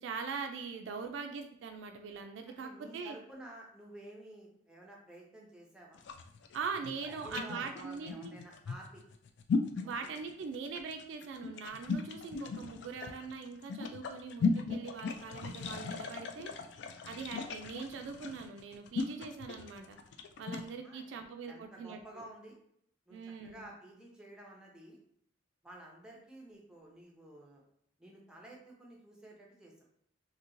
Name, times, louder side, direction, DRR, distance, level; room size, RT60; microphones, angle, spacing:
voice 1, 0.0-3.2 6.5-8.4 9.8-16.5 17.0-20.0 20.4-22.2 23.1-23.7, right 5 dB, 75° right, 5 dB, 0.3 m, -42 dB
voice 2, 2.5-6.0 6.8-9.0 9.8-9.9 16.5-16.7 20.8-21.2 21.5-22.5 23.1-25.0 25.6-27.6 28.0-29.7, right 1 dB, 5° right, -2 dB, 0.6 m, -52 dB
sound 1, 5.9-20.7, left 5 dB, 65° left, 0.3 m, -37 dB
3.0 x 2.7 x 2.5 m, 0.68 s
head